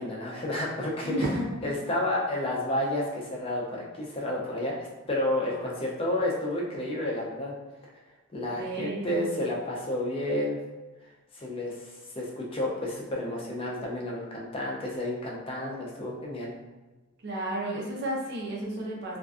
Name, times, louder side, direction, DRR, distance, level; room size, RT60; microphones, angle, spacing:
voice 1, 0.0-1.1 1.6-7.5 8.3-10.6 11.3-16.5, left 1 dB, 25° left, -3 dB, 0.4 m, -31 dB
voice 2, 1.0-1.6 8.6-9.3 17.2-19.2, right 1 dB, 50° right, -3 dB, 0.5 m, -32 dB
2.4 x 2.2 x 2.3 m, 1.2 s
head